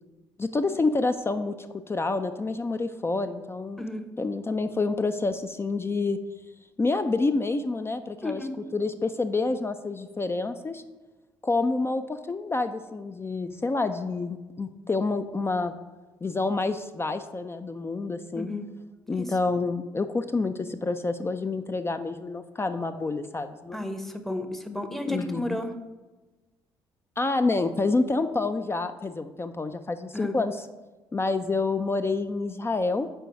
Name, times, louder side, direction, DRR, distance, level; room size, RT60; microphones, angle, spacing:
voice 1, 0.4-3.8 4.2-6.2 6.8-8.4 8.7-10.8 11.4-15.7 16.2-18.5 19.1-23.9 25.1-25.6 27.2-30.6 31.1-33.1, left 3 dB, 20° left, 8 dB, 0.3 m, -28 dB
voice 2, 8.2-8.5 18.3-18.6 19.1-19.3 23.7-25.7 30.1-30.3, left 1 dB, ahead, 7 dB, 0.7 m, -32 dB
4.5 x 4.5 x 5.1 m, 1.2 s
hypercardioid pair, 45°, 12 cm